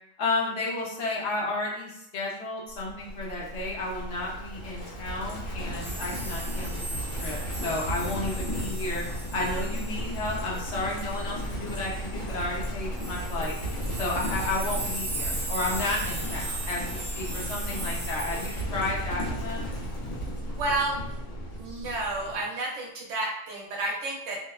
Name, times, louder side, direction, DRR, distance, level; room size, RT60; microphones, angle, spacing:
voice 1, 0.2-9.0 9.3-13.6 14.0-19.7, left 2 dB, 65° left, -3 dB, 0.9 m, -32 dB
Livestock farm animals working animals, 2.8-22.4, equal, 85° left, 1.1 m, -34 dB
sound 1, 5.8-11.9 12.6-12.7 13.0-18.6, right 2 dB, 50° right, 0.6 m, -38 dB
voice 2, 20.5-21.0 21.5-24.4, right 2 dB, 75° right, -2 dB, 1.0 m, -31 dB
2.7 x 2.0 x 2.3 m, 0.78 s
omnidirectional pair, 1.3 m